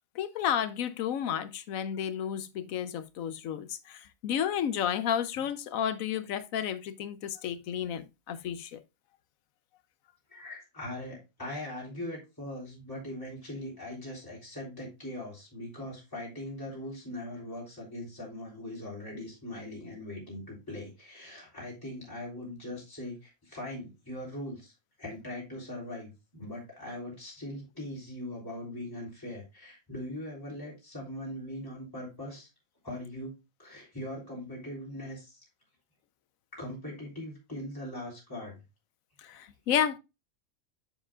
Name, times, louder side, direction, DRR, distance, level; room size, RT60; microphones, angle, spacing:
voice 1, 0.1-8.8 39.2-40.0, left 9 dB, 80° left, 1.1 m, -32 dB
voice 2, 10.3-24.7 25.0-32.5 32.8-35.4 36.5-38.5, left 1 dB, 15° left, 3.2 m, -41 dB
7.3 x 6.9 x 2.4 m
omnidirectional pair, 1.4 m